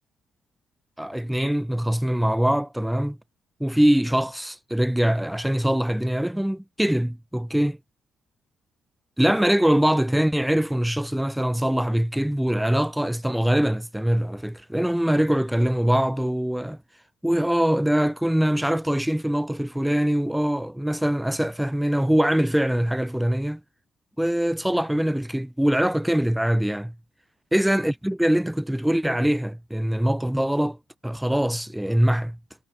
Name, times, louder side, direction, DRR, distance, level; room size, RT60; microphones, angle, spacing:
voice 1, 1.0-3.2 3.6-7.8 9.2-16.8 17.2-23.6 24.2-26.9 27.5-30.8 31.0-32.4, equal, 5° right, 2.3 m, -23 dB
cardioid pair, 90°, 0 cm